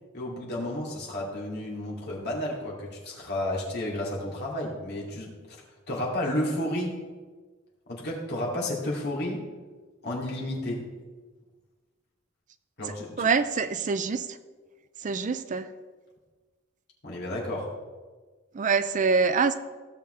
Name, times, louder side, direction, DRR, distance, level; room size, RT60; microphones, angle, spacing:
voice 1, 0.1-5.6 5.9-7.0 7.9-9.5 10.0-10.9 12.8-13.3 17.0-17.7, left 1 dB, 50° left, -4 dB, 2.7 m, -32 dB
voice 2, 13.2-14.4 15.0-15.7 18.5-19.5, right 5 dB, 35° right, 11 dB, 0.4 m, -25 dB
16.5 x 7.0 x 3.3 m, 1.4 s
head